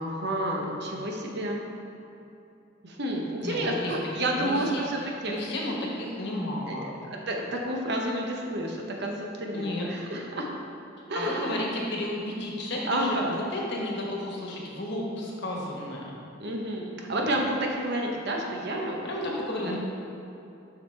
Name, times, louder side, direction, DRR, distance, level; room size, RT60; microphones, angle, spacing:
voice 1, 0.0-1.6 2.8-5.3 6.7-10.5 11.1-11.6 12.8-13.4 13.8-13.9 16.4-19.3 19.6-19.7, right 1 dB, 55° right, 0 dB, 0.9 m, -30 dB
voice 2, 3.4-3.9 4.2-6.9 9.5-9.9 11.0-16.0 19.0-19.8, left 1 dB, 60° left, -2 dB, 1.2 m, -33 dB
7.4 x 6.1 x 3.3 m, 2.8 s
head